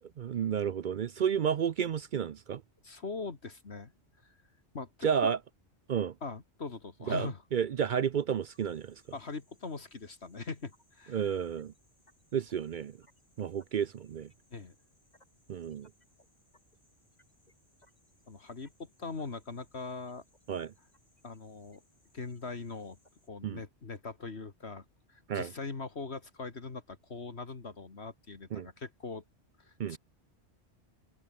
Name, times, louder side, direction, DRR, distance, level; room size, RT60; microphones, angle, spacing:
voice 1, 0.2-2.6 5.0-5.4 5.9-6.1 7.1-9.0 11.1-11.7 12.3-13.0 13.4-14.3 15.5-15.9 20.5-20.7 23.4-23.6 25.3-25.5 28.5-28.7 29.8-30.0, right 8 dB, 55° right, 0.6 m, -31 dB
voice 2, 2.8-3.9 4.2-4.4 4.7-5.3 6.2-7.4 9.1-11.3 14.5-14.8 18.3-20.2 21.2-21.8 22.1-23.0 23.3-29.2 29.6-30.0, left 4 dB, 65° left, 2.3 m, -41 dB
sound 1, 8.4-23.3, left 1 dB, 35° left, 6.8 m, -70 dB
omnidirectional pair, 1.2 m